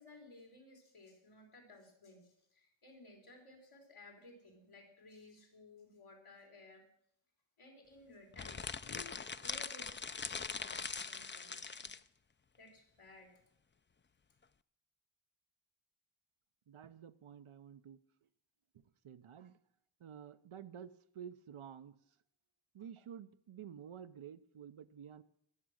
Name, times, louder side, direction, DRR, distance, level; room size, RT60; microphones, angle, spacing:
voice 1, 0.0-6.8 7.6-8.6 8.8-10.2 10.6-11.9 12.6-13.4, left 2 dB, 85° left, 2 dB, 3.7 m, -58 dB
sound 1, 8.3-12.0, left 5 dB, 25° left, 0.5 m, -42 dB
voice 2, 16.7-18.3 18.7-19.6 20.0-22.0 22.7-25.2, right 8 dB, 80° right, 12 dB, 0.8 m, -51 dB
19.5 x 7.2 x 6.4 m, 0.73 s
cardioid pair, 45°, 49 cm